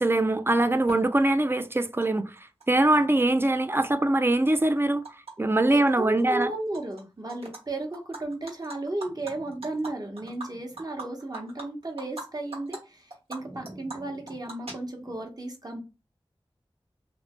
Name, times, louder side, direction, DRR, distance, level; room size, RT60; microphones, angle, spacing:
voice 1, 0.0-2.4 2.7-5.0 5.4-6.5, right 2 dB, 25° right, 0.3 m, -23 dB
Animal, 0.9-1.0 2.0-2.1 2.4-3.2 3.6-5.3 5.6-5.9 6.2-7.0 7.3-7.6 7.9-12.2 12.5-12.8 13.1-15.2, right 2 dB, 85° right, 1.1 m, -42 dB
voice 2, 5.7-15.8, right 2 dB, 40° right, 0.8 m, -34 dB
3.1 x 2.0 x 2.9 m
wide cardioid pair, 50°, 10 cm